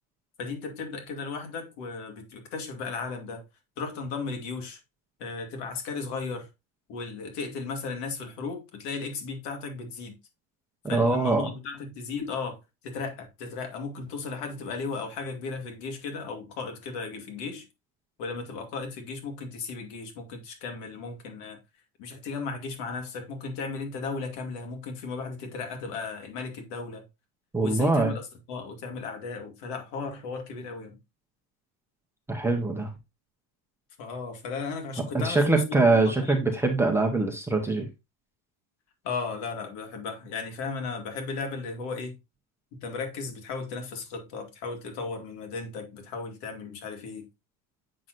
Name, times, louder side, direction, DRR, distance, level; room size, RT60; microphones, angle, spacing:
voice 1, 0.4-3.4 3.8-4.8 5.2-6.5 6.9-10.1 10.9-17.6 18.2-21.6 22.0-27.0 27.6-31.0 34.0-36.5 39.0-42.2 42.8-47.3, left 4 dB, 70° left, 2.4 m, -35 dB
voice 2, 10.9-11.5 27.5-28.2 32.3-32.9 35.1-37.9, right 3 dB, 5° right, 0.9 m, -23 dB
7.6 x 6.1 x 2.5 m
cardioid pair, 160°, 43 cm